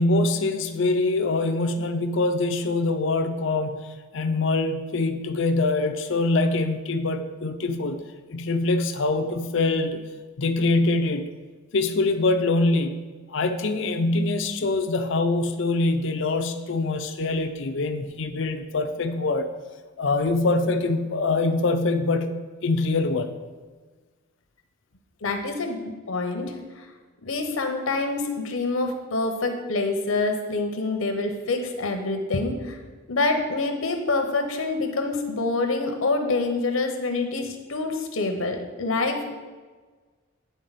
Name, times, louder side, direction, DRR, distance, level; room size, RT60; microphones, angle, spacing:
voice 1, 0.0-3.8 4.1-8.0 8.3-10.0 10.4-11.3 11.7-13.0 13.3-19.5 20.0-22.3 22.6-23.3, left 2 dB, 65° left, 8 dB, 0.5 m, -24 dB
voice 2, 25.2-25.8 26.1-26.6 27.2-32.8 33.1-39.3, left 3 dB, 80° left, 5 dB, 0.9 m, -26 dB
9.2 x 4.0 x 4.1 m, 1.4 s
head